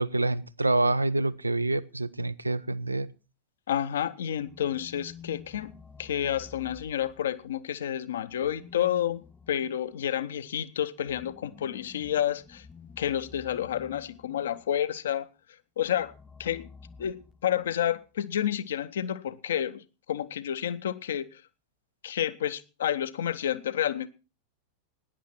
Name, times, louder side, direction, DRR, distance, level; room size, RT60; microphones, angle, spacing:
voice 1, 0.0-3.1, right 2 dB, 80° right, 0.6 m, -27 dB
voice 2, 3.7-5.7 6.0-9.2 9.5-12.6 13.0-15.3 15.8-16.1 16.4-16.7 17.0-21.4 22.0-24.1, left 10 dB, 60° left, 0.8 m, -30 dB
sound 1, 4.2-7.6 8.2-14.8 15.8-17.8, left 5 dB, 15° left, 0.8 m, -51 dB
16.5 x 10.0 x 4.4 m
figure-of-eight pair, 90°, 0 cm